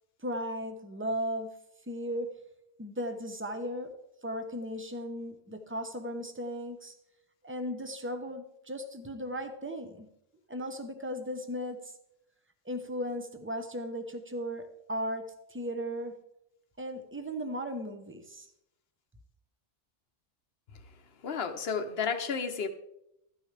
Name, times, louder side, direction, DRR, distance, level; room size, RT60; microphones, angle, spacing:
voice 1, 0.2-1.5 1.9-2.3 2.8-3.9 4.2-7.0 7.4-10.1 10.5-11.9 12.6-16.2 16.8-18.5, equal, 10° right, 7 dB, 0.8 m, -36 dB
voice 2, 21.2-22.7, left 6 dB, 55° left, 8 dB, 1.1 m, -32 dB
13.5 x 9.5 x 3.3 m, 0.81 s
omnidirectional pair, 1.2 m